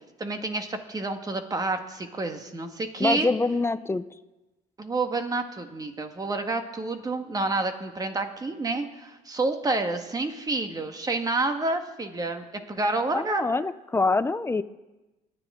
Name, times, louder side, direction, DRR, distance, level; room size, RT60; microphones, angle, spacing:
voice 1, 0.2-3.3 4.8-13.5, right 2 dB, 20° right, 6 dB, 1.5 m, -29 dB
voice 2, 3.0-4.0 13.1-14.6, left 3 dB, 15° left, 14 dB, 0.5 m, -25 dB
26.0 x 9.8 x 3.7 m, 1.1 s
cardioid pair, 110°, 17 cm